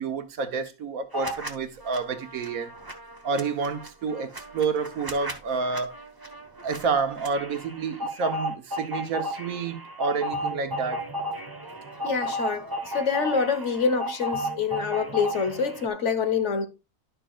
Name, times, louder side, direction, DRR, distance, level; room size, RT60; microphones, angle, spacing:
voice 1, 0.0-2.7 3.2-5.9 6.6-11.0, right 5 dB, 85° right, 1.5 m, -29 dB
sound 1, 1.1-1.5 1.8-15.9, equal, 15° right, 1.2 m, -34 dB
voice 2, 12.0-16.7, left 5 dB, 60° left, 1.5 m, -26 dB
11.5 x 6.6 x 2.4 m
omnidirectional pair, 1.4 m